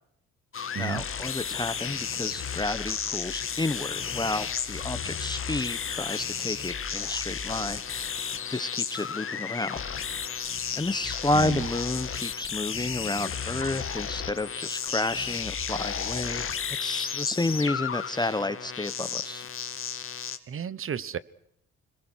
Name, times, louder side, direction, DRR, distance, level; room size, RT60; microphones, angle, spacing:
sound 1, 0.5-20.4, left 7 dB, 45° left, 2.0 m, -33 dB
voice 1, 0.8-9.8 10.3-16.5 16.8-19.5, left 2 dB, 15° left, 12 dB, 1.1 m, -31 dB
voice 2, 11.3-11.7 20.5-21.2, right 7 dB, 45° right, 19 dB, 1.1 m, -32 dB
26.0 x 21.5 x 6.4 m, 0.74 s
cardioid pair, 90°, 30 cm